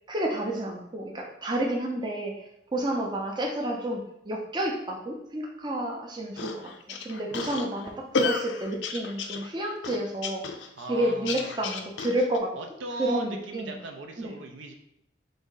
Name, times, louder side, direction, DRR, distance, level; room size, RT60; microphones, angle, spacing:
voice 1, 0.1-2.3 2.7-10.4 10.9-12.5 13.0-13.8 14.2-14.3, right 1 dB, 25° right, -1 dB, 0.5 m, -30 dB
sound 1, 6.4-12.4, left 4 dB, 70° left, 0.4 m, -33 dB
voice 2, 10.8-11.7 12.5-14.7, right 2 dB, 80° right, 4 dB, 0.5 m, -38 dB
4.1 x 2.6 x 3.8 m, 0.80 s
head